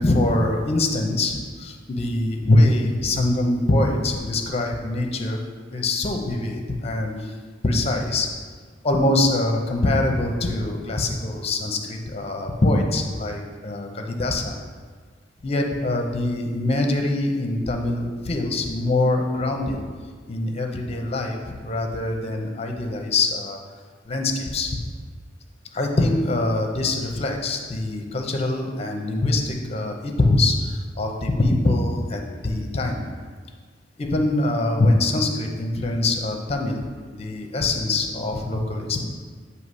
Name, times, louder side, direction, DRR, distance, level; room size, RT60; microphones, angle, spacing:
voice 1, 0.0-5.4 5.7-7.3 7.6-8.3 8.8-14.5 15.4-19.8 20.3-23.6 24.1-24.8 25.7-33.0 34.0-36.9 37.1-39.1, left 2 dB, 35° left, 3 dB, 0.7 m, -23 dB
7.9 x 2.8 x 5.4 m, 1.6 s
head